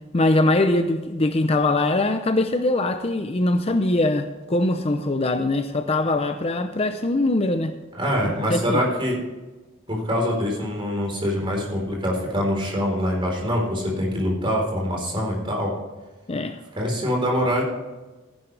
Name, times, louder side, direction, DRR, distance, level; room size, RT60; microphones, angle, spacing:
voice 1, 0.1-7.7 8.5-8.8 16.3-16.6, left 2 dB, 30° left, 8 dB, 0.6 m, -22 dB
voice 2, 7.9-9.2 9.9-15.7 16.7-17.6, equal, 25° right, -1 dB, 4.0 m, -24 dB
15.0 x 10.5 x 3.4 m, 1.2 s
head